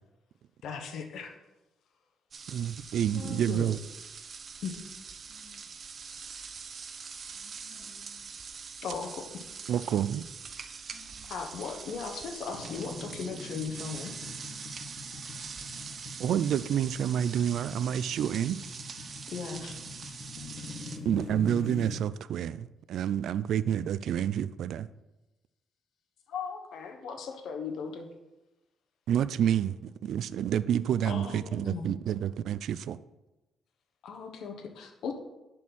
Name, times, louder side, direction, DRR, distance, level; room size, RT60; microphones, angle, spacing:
voice 1, 0.6-1.3 3.1-3.7 4.6-4.7 8.8-9.5 11.3-14.1 19.3-19.7 26.3-28.1 31.0-31.9 34.0-35.1, left 5 dB, 70° left, 4 dB, 1.3 m, -37 dB
sound 1, 2.3-21.0, right 5 dB, 45° right, 0.9 m, -44 dB
voice 2, 2.5-3.8 9.7-10.2 16.2-18.6 21.0-24.9 29.1-33.0, right 9 dB, 75° right, 16 dB, 0.3 m, -29 dB
voice 3, 5.3-5.6 7.3-8.3 10.9-11.3 15.6-16.2 20.3-20.9, left 4 dB, 30° left, -5 dB, 3.4 m, -58 dB
sound 2, 12.5-22.0, left 3 dB, 50° left, 1.9 m, -44 dB
10.5 x 4.3 x 6.2 m, 1.0 s
cardioid pair, 90°, 0 cm